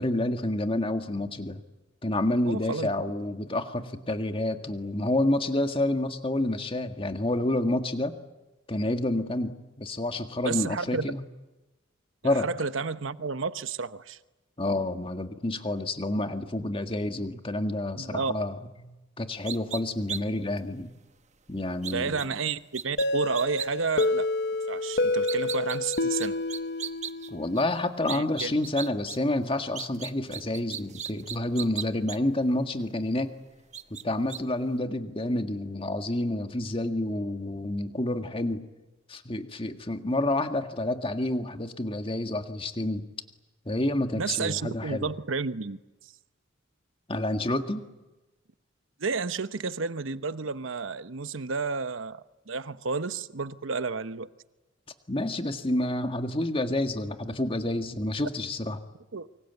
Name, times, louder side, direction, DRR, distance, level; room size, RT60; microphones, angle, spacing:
voice 1, 0.0-1.6 2.0-8.2 8.7-11.2 12.2-12.5 14.6-18.6 18.8-20.9 21.5-22.2 27.3-33.3 34.0-38.6 39.1-43.1 43.7-45.1 47.1-47.8 55.1-58.8, left 1 dB, 30° left, 1.8 m, -29 dB
voice 2, 2.5-2.9 10.4-11.1 12.2-14.2 18.0-18.4 21.9-24.3 24.7-26.4 28.1-28.6 44.1-45.8 49.0-54.3 59.1-59.3, right 4 dB, 80° right, 1.0 m, -31 dB
sound 1, 19.5-19.8 20.1-20.2 20.6-20.7 21.8-22.3 22.7-23.1 23.4-23.7 24.0-24.1 25.1-27.3 27.6-27.7 28.1-29.2 29.4-32.2 32.8-32.9 33.7-34.0 34.3-34.4, right 8 dB, 35° right, 1.1 m, -36 dB
sound 2, 23.0-27.7, left 2 dB, 55° left, 0.9 m, -28 dB
28.0 x 25.0 x 8.3 m
head